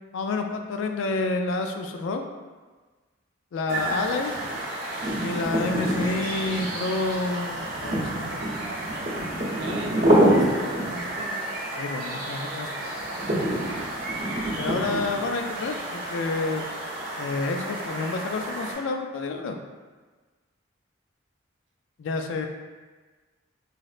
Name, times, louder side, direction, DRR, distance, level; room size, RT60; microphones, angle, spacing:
voice 1, 0.0-2.2 3.5-4.3 5.2-8.4 10.1-10.2 11.8-12.9 14.6-16.7 17.2-19.6 22.0-22.5, left 3 dB, 75° left, 5 dB, 0.3 m, -29 dB
sound 1, 3.7-18.7, right 1 dB, 45° right, 0.8 m, -27 dB
voice 2, 9.5-11.4, right 1 dB, 70° right, 0 dB, 0.4 m, -39 dB
4.0 x 2.1 x 2.4 m, 1.3 s
head